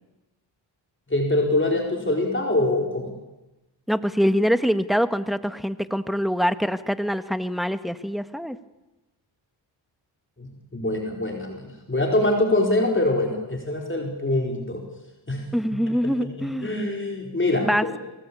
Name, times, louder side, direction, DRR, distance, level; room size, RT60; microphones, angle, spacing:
voice 1, 1.1-3.1 10.4-14.8 15.3-15.4 16.0-18.0, left 2 dB, 25° left, 1 dB, 4.5 m, -24 dB
voice 2, 3.9-8.6 15.5-16.8 17.6-17.8, equal, ahead, 12 dB, 1.6 m, -24 dB
23.5 x 18.5 x 8.6 m, 1.0 s
cardioid pair, 55°, 47 cm